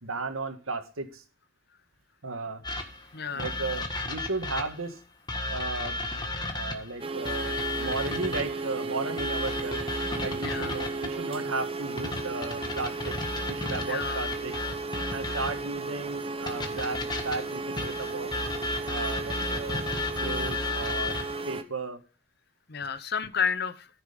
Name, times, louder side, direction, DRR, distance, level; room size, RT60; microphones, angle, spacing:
voice 1, 0.0-1.2 2.2-2.6 3.3-5.0 5.5-6.0 6.5-9.8 10.2-13.2 13.5-14.5 15.1-18.3 18.9-19.9 20.2-21.2 21.5-22.0, right 3 dB, 85° right, 7 dB, 1.8 m, -35 dB
sound 1, 2.6-4.9 5.3-8.7 9.2-11.2 12.0-15.8 16.5-21.4, left 2 dB, 20° left, 1.6 m, -33 dB
voice 2, 3.1-3.5 6.5-6.6 10.4-10.7 13.9-14.2 22.7-23.9, left 6 dB, 50° left, 13 dB, 0.8 m, -31 dB
sound 2, 7.0-21.6, right 3 dB, 25° right, 0.9 m, -35 dB
14.5 x 6.6 x 5.2 m, 0.36 s
head